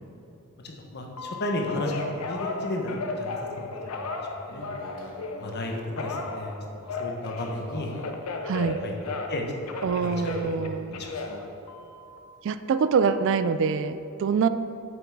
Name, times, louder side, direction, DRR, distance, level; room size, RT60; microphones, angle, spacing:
voice 1, 0.6-4.2 4.5-4.6 5.4-7.9 8.5-9.4 10.0-10.2 10.4-10.6 10.9-11.1, left 1 dB, 50° left, 1 dB, 1.0 m, -34 dB
Telephone, 1.2-5.5 6.0-9.4 9.7-12.2 12.7-13.2, left 3 dB, 85° left, 0.7 m, -35 dB
sound 1, 4.5-5.7 7.2-11.4, equal, 65° left, 1.3 m, -48 dB
voice 2, 8.4-8.8 9.8-11.0 12.4-14.5, right 5 dB, 55° right, 12 dB, 0.3 m, -25 dB
7.8 x 5.8 x 4.7 m, 2.9 s
head